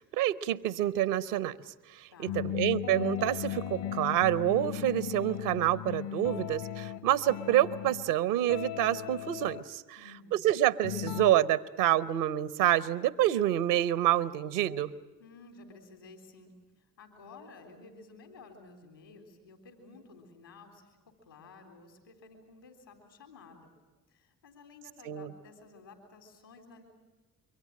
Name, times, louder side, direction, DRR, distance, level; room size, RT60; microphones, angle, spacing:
voice 1, 0.0-10.0 10.3-14.9 25.0-25.3, right 13 dB, 70° right, 18 dB, 0.9 m, -28 dB
voice 2, 2.1-2.6 10.0-10.5 15.2-23.7 24.1-26.8, left 3 dB, 90° left, 4 dB, 3.6 m, -53 dB
sound 1, 2.3-8.1 8.5-9.6 10.8-11.3, left 11 dB, 55° left, 0.9 m, -37 dB
25.5 x 23.5 x 7.5 m, 1.2 s
figure-of-eight pair, 40°, 49 cm